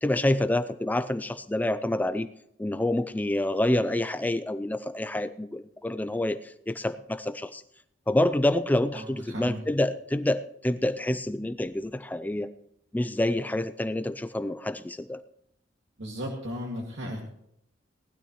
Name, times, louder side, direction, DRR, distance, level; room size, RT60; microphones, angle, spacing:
voice 1, 0.0-2.3 2.6-7.6 8.1-12.5 12.9-15.2, left 1 dB, 10° left, 12 dB, 0.4 m, -27 dB
voice 2, 8.9-9.6 16.0-17.2, equal, 85° right, -1 dB, 2.1 m, -35 dB
19.0 x 12.5 x 3.1 m, 0.74 s
head